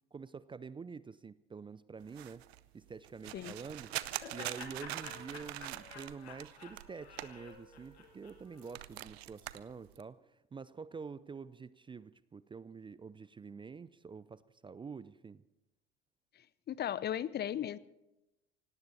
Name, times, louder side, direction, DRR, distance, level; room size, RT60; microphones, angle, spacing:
voice 1, 0.1-2.4 2.7-3.9 4.3-15.4, right 5 dB, 15° right, 18 dB, 0.4 m, -47 dB
sound 1, 2.0-8.0 8.2-10.0, right 15 dB, 75° right, 0.7 m, -44 dB
Wind instrument woodwind instrument, 3.2-6.3 6.8-10.2, left 6 dB, 55° left, 4.8 m, -62 dB
Laughter, 3.6-8.7, left 5 dB, 80° left, 2.4 m, -52 dB
voice 2, 16.3-17.8, left 10 dB, 30° left, 19 dB, 0.7 m, -37 dB
18.0 x 17.5 x 4.2 m, 0.94 s
hypercardioid pair, 70°, 32 cm